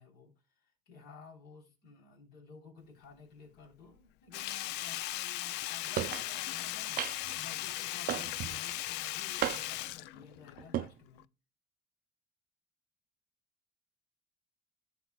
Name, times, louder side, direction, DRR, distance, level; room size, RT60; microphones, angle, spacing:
voice 1, 0.0-11.2, left 4 dB, 70° left, 3.5 m, -54 dB
Sink (filling or washing), 4.3-10.8 11.2-11.3, left 16 dB, 90° left, 0.4 m, -38 dB
sound 1, 6.0-6.3 7.0-7.4 8.1-8.6 9.4-9.9 10.6-10.9, right 13 dB, 60° right, 0.5 m, -34 dB
14.5 x 5.8 x 2.3 m
cardioid pair, 110°, 17 cm